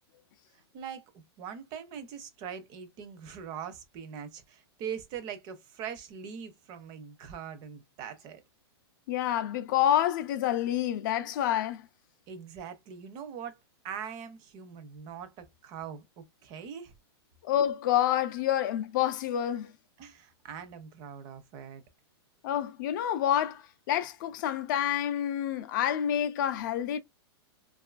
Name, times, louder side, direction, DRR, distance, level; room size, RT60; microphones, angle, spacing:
voice 1, 1.4-8.4 12.3-13.6 13.8-16.9 20.0-21.8, right 7 dB, 30° right, 0.5 m, -42 dB
voice 2, 9.1-11.8 17.4-19.7 22.4-27.0, left 11 dB, 45° left, 0.4 m, -28 dB
2.5 x 2.4 x 2.3 m
supercardioid pair, 155°, 14 cm